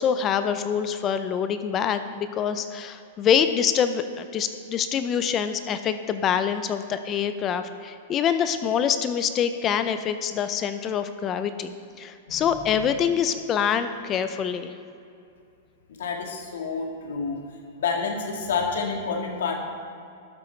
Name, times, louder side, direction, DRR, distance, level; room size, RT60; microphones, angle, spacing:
voice 1, 0.0-14.7, left 8 dB, 25° left, 10 dB, 0.5 m, -25 dB
voice 2, 16.0-17.4 17.8-19.5, left 5 dB, 85° left, 1 dB, 1.9 m, -28 dB
12.5 x 6.8 x 4.5 m, 2.5 s
supercardioid pair, 150°, 0 cm